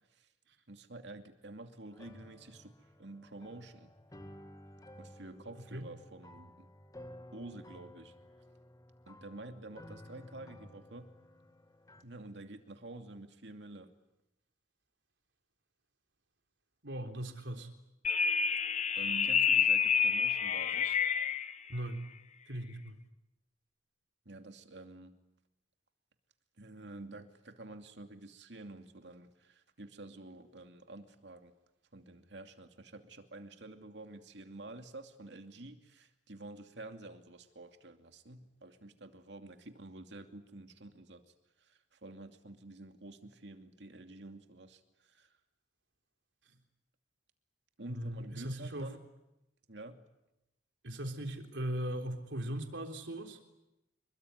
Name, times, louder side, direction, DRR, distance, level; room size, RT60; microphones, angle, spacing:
voice 1, 0.7-3.9 5.0-6.7 7.3-8.1 9.1-11.1 12.0-13.9 18.9-21.0 24.3-25.1 26.6-31.5 31.9-41.2 41.6-45.3 47.8-49.0 49.7-50.0, right 2 dB, 70° right, 6 dB, 2.7 m, -49 dB
sound 1, 1.9-12.0, left 1 dB, 20° left, 2.2 m, -54 dB
voice 2, 16.8-17.7 21.7-22.0 22.5-23.0 47.9-48.9 50.8-53.4, right 1 dB, 85° right, 5 dB, 3.6 m, -39 dB
sound 2, 18.0-21.5, left 7 dB, 40° left, 1.2 m, -28 dB
27.0 x 22.5 x 9.5 m, 0.95 s
head